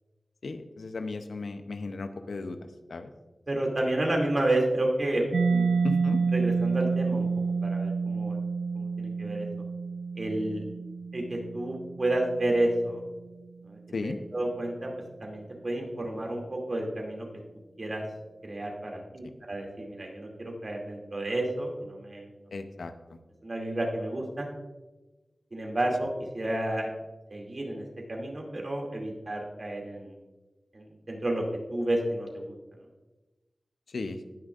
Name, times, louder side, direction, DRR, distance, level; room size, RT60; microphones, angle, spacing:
voice 1, 0.4-2.6 2.9-3.1 5.8-6.2 13.9-14.2 22.5-22.9 33.9-34.2, left 3 dB, 90° left, 8 dB, 0.6 m, -35 dB
voice 2, 3.5-5.7 6.3-7.3 7.6-8.4 8.7-9.5 10.1-10.6 11.1-13.0 13.7-14.9 15.2-17.3 17.8-18.0 18.4-22.3 23.4-24.5 25.5-26.1 26.3-26.9 27.3-27.8 28.1-30.1 30.7-31.4 31.7-32.5, right 1 dB, 55° right, 0 dB, 2.4 m, -30 dB
Mallet percussion, 5.3-12.8, right 4 dB, 85° right, 0.4 m, -29 dB
17.5 x 6.3 x 2.4 m, 1.1 s
cardioid pair, 45°, 0 cm